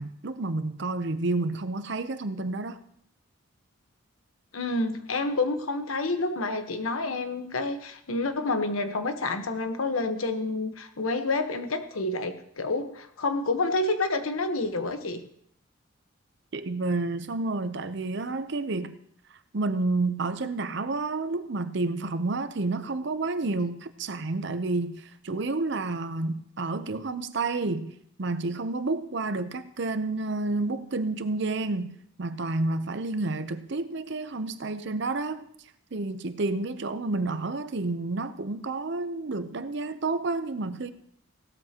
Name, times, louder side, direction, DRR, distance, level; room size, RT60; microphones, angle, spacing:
voice 1, 0.0-2.8 16.5-19.0 19.5-35.5 35.9-40.9, right 3 dB, 55° right, 0.7 m, -30 dB
voice 2, 4.5-15.2, left 2 dB, 90° left, 1.1 m, -28 dB
17.0 x 13.0 x 2.9 m
head